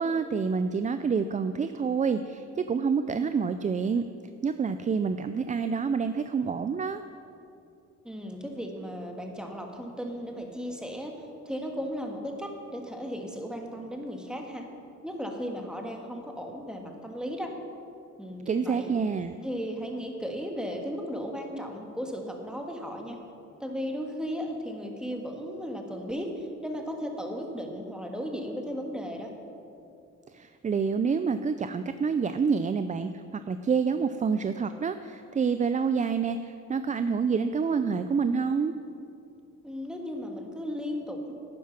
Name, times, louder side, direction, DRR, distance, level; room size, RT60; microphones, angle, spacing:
voice 1, 0.0-4.0 4.4-7.0 18.5-19.3 30.3-38.7, right 5 dB, 25° right, 10 dB, 0.4 m, -27 dB
voice 2, 8.0-11.1 11.5-14.6 15.0-17.5 18.2-18.9 19.4-23.2 23.6-29.3 39.6-41.3, equal, 5° right, 2 dB, 1.8 m, -35 dB
11.5 x 9.5 x 5.9 m, 2.6 s
cardioid pair, 90°, 30 cm